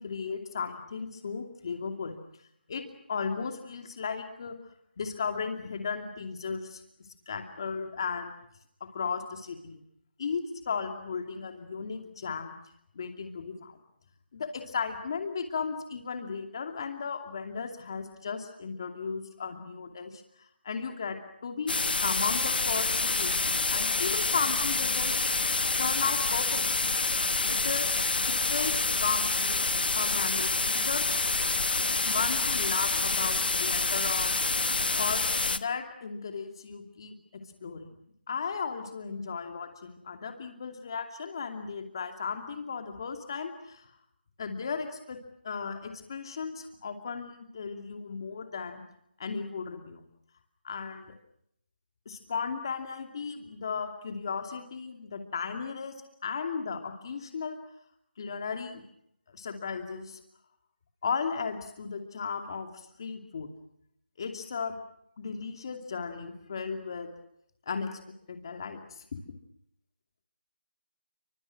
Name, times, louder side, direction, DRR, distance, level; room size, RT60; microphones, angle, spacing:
voice 1, 0.0-2.2 2.7-4.6 5.0-6.8 7.3-8.3 8.9-9.8 10.2-12.5 12.9-13.8 14.3-20.2 20.6-25.1 25.8-26.7 27.5-27.9 28.3-31.1 32.0-34.3 35.0-37.1 37.6-37.9 38.3-43.8 44.4-45.2 45.4-48.8 49.2-50.1 50.6-51.1 52.1-55.9 56.2-57.6 58.2-58.8 59.3-60.2 61.0-62.7 63.0-63.5 64.2-64.7 65.2-67.1 67.7-68.0 68.3-69.2, left 5 dB, 25° left, 5 dB, 2.7 m, -35 dB
sound 1, 21.7-35.6, left 3 dB, 60° left, 1.3 m, -27 dB
28.0 x 25.5 x 6.1 m, 0.74 s
figure-of-eight pair, 175°, 6 cm